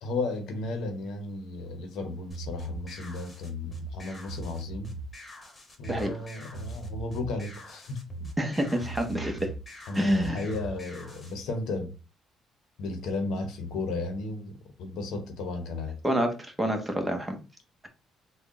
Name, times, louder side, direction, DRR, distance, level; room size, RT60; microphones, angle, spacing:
voice 1, 0.0-4.9 5.8-8.3 9.9-11.9 12.8-16.0, left 3 dB, 75° left, 0.9 m, -34 dB
sound 1, 2.3-11.3, right 2 dB, 30° left, 1.4 m, -41 dB
voice 2, 8.4-9.5 9.9-10.4 16.0-17.4, right 1 dB, 15° right, 1.1 m, -28 dB
3.7 x 2.3 x 3.7 m
supercardioid pair, 75°, 0 cm